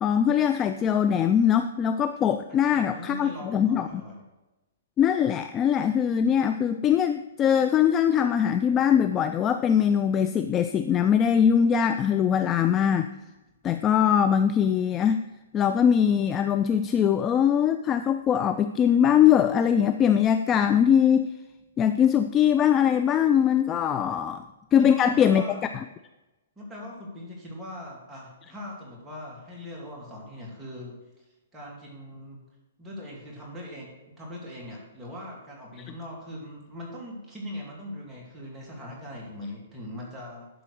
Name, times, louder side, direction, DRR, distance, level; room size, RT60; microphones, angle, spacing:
voice 1, 0.0-4.0 5.0-13.1 13.6-15.2 15.5-21.3 21.8-24.4 24.7-25.4, left 8 dB, 20° left, 9 dB, 0.3 m, -22 dB
voice 2, 2.5-4.2 24.7-25.7 26.6-32.4 32.8-33.9 34.2-40.5, left 1 dB, 5° right, -4 dB, 2.5 m, -40 dB
11.5 x 3.9 x 6.4 m, 1.0 s
hypercardioid pair, 155°, 0 cm